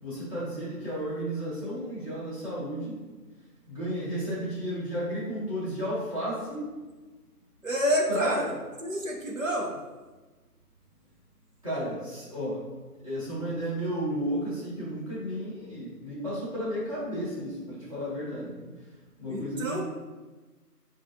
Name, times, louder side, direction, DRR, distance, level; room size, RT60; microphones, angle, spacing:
voice 1, 0.0-3.0 3.7-6.7 8.1-8.4 11.6-12.6 13.0-18.6 19.2-19.8, equal, 20° right, -11 dB, 1.2 m, -33 dB
voice 2, 7.6-8.5 8.8-9.8 19.3-19.8, equal, 55° right, -1 dB, 1.0 m, -28 dB
6.0 x 2.5 x 2.8 m, 1.2 s
figure-of-eight pair, 160°, 47 cm